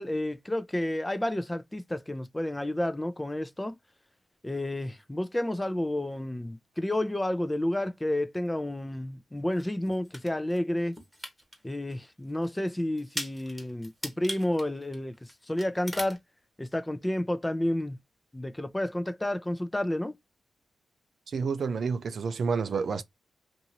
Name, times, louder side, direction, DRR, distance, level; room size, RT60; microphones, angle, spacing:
voice 1, 0.0-3.8 4.4-11.0 11.6-16.2 16.6-18.0 18.3-20.1, left 1 dB, 15° left, 0.5 m, -30 dB
sound 1, 9.6-10.6 10.9-11.6 11.9-12.0 12.4-12.5 13.0-15.3 15.6-16.2, equal, 5° right, 1.1 m, -39 dB
voice 2, 21.3-23.0, right 5 dB, 65° right, 0.4 m, -29 dB
2.7 x 2.6 x 2.8 m
cardioid pair, 65°, 0 cm